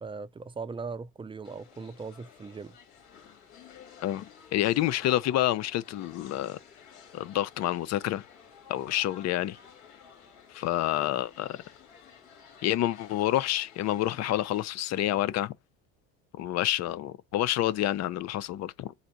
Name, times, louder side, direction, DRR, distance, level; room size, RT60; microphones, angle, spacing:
voice 1, 0.0-2.8, right 4 dB, 15° right, 0.5 m, -39 dB
sound 1, 1.4-14.6, left 7 dB, 80° left, 2.6 m, -53 dB
voice 2, 4.0-6.6 7.1-8.2 8.7-9.6 10.5-11.6 12.6-15.5 16.4-18.9, left 13 dB, 55° left, 0.6 m, -28 dB
4.1 x 2.6 x 4.4 m
supercardioid pair, 90°, 32 cm